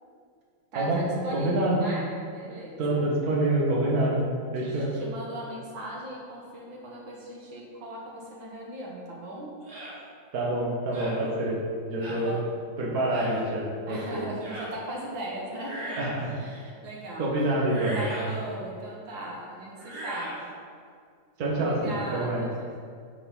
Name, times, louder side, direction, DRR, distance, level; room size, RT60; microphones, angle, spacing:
voice 1, 0.7-3.1 4.6-9.5 12.2-12.5 13.9-16.0 16.3-17.6 17.9-20.6 21.4-22.8, right 1 dB, 85° right, -3 dB, 2.0 m, -38 dB
voice 2, 1.3-1.8 2.8-4.2 4.5-4.9 10.3-11.5 11.9-12.4 12.8-14.2 16.0-16.3 17.2-18.0 21.4-21.8 22.1-22.4, right 1 dB, 55° right, -4 dB, 1.7 m, -26 dB
sound 1, 9.7-10.0 10.9-11.2 12.0-12.2 13.1-13.4 14.4-14.7 15.5-16.3 17.6-18.3 19.8-20.4, right 1 dB, 35° right, 1.4 m, -38 dB
8.5 x 4.1 x 5.5 m, 2.2 s
omnidirectional pair, 2.1 m